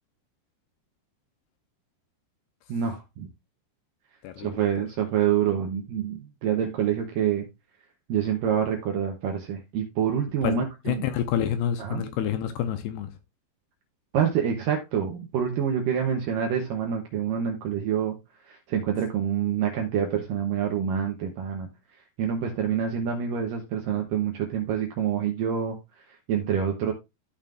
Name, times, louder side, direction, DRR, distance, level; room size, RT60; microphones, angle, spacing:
voice 1, 2.7-3.3 4.4-7.5 8.1-11.0 11.8-12.0 14.1-18.2 18.5-21.7 22.2-25.8 26.3-26.9, right 8 dB, 75° right, 2.0 m, -27 dB
voice 2, 4.2-4.9 10.4-13.1, left 10 dB, 80° left, 2.6 m, -29 dB
13.0 x 5.6 x 2.5 m
omnidirectional pair, 5.0 m